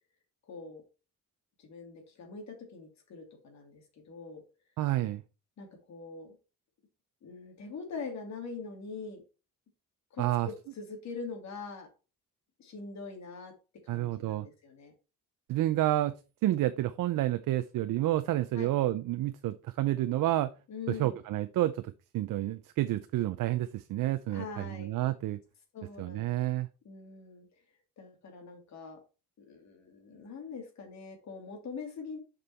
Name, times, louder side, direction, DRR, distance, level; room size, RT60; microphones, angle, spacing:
voice 1, 0.5-0.8 1.6-4.4 5.6-6.4 7.2-9.2 10.1-11.9 12.6-13.5 13.8-14.9 18.5-18.7 20.7-21.2 24.3-24.9 25.7-26.4 26.8-27.6 28.0-29.0 29.4-32.2, left 4 dB, 55° left, 4 dB, 2.5 m, -43 dB
voice 2, 4.8-5.2 10.2-10.5 13.9-14.5 15.5-16.1 16.4-20.5 20.9-25.4 26.0-26.7, right 14 dB, 70° right, 11 dB, 0.6 m, -29 dB
6.8 x 5.4 x 4.3 m, 0.32 s
cardioid pair, 150°, 34 cm